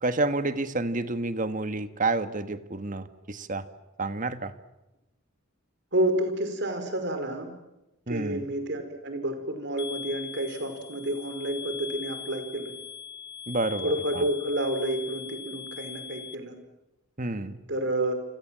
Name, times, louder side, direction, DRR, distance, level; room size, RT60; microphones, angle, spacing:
voice 1, 0.0-3.6 4.0-4.5 8.1-8.5 13.5-14.2 17.2-17.6, right 2 dB, 40° right, 11 dB, 1.6 m, -29 dB
voice 2, 5.9-7.5 8.1-12.7 13.8-16.5 17.7-18.1, right 1 dB, 55° right, 8 dB, 5.1 m, -29 dB
sound 1, 9.8-16.3, left 7 dB, 50° left, 1.6 m, -40 dB
29.0 x 26.0 x 7.6 m, 0.95 s
head